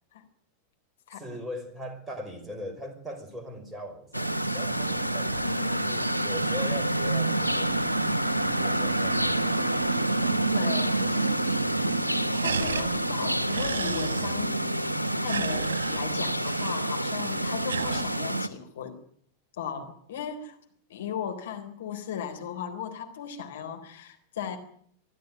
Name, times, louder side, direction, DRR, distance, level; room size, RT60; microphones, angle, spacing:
voice 1, 1.1-7.9 8.4-9.7, equal, 10° right, 5 dB, 5.3 m, -40 dB
sound 1, 4.1-18.5, right 1 dB, 85° right, 1.2 m, -27 dB
sound 2, 5.3-10.4 10.7-10.8 11.1-11.6 11.9-18.0, right 6 dB, 65° right, 2.5 m, -38 dB
sound 3, 5.4-15.7, left 1 dB, 85° left, 0.8 m, -38 dB
voice 2, 10.5-11.4 12.4-14.6 15.2-18.9 19.6-20.6 20.9-24.6, left 8 dB, 60° left, 5 dB, 3.8 m, -36 dB
24.5 x 14.0 x 9.3 m, 0.64 s
figure-of-eight pair, 90°, 0 cm